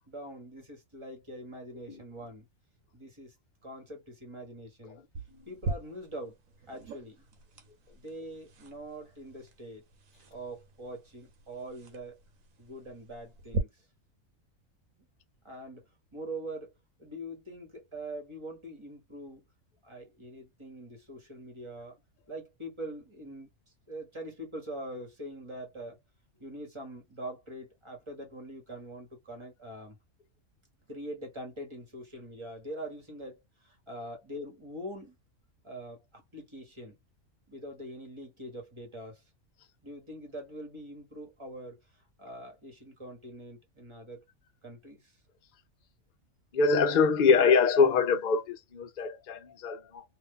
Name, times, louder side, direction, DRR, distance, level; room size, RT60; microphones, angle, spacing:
voice 1, 0.1-2.5 2.9-3.3 3.6-5.0 5.5-6.3 6.7-7.3 7.9-9.8 10.3-12.2 12.6-13.8 15.4-15.8 16.1-16.7 17.0-19.4 19.8-21.9 22.3-23.5 23.9-26.0 26.4-30.0 30.9-35.1 35.6-37.0 37.5-39.2 39.8-41.8 42.2-44.2 44.6-45.2, right 1 dB, 20° right, 1.3 m, -43 dB
sound 1, 5.1-13.6, right 4 dB, 80° right, 1.2 m, -42 dB
voice 2, 46.5-50.0, left 5 dB, 45° left, 0.7 m, -24 dB
2.7 x 2.6 x 3.6 m
omnidirectional pair, 1.4 m